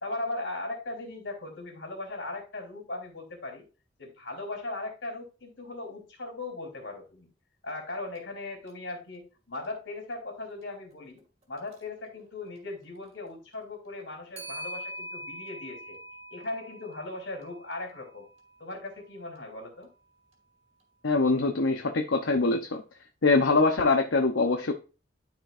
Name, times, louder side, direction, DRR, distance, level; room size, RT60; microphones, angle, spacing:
voice 1, 0.0-3.7 4.0-7.3 7.6-11.2 11.5-16.0 16.3-18.3 18.6-19.9, left 2 dB, 75° left, 2 dB, 3.3 m, -38 dB
Clock, 8.2-8.3 8.7-8.8 11.6-11.8 14.4-18.6, equal, 35° right, 2.1 m, -43 dB
voice 2, 21.0-22.8 23.2-24.7, left 3 dB, 90° left, 4 dB, 0.8 m, -23 dB
12.5 x 4.5 x 2.5 m, 0.33 s
head